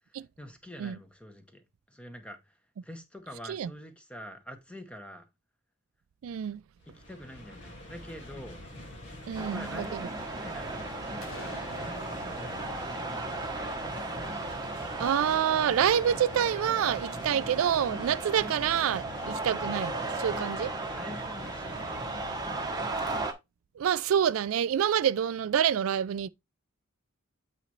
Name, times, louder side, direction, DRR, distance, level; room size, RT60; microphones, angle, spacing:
voice 1, 0.0-5.3 6.9-8.6 9.3-14.2 20.3-22.4, equal, 5° left, 1.0 m, -47 dB
voice 2, 6.2-6.6 9.3-9.6 15.0-20.7 23.8-26.3, right 9 dB, 80° right, 0.3 m, -27 dB
sound 1, 6.8-23.3, left 1 dB, 60° left, 1.8 m, -44 dB
sound 2, 9.3-23.3, right 2 dB, 20° right, 1.0 m, -36 dB
sound 3, 11.2-15.0, left 2 dB, 75° left, 1.3 m, -49 dB
8.2 x 4.1 x 3.1 m
head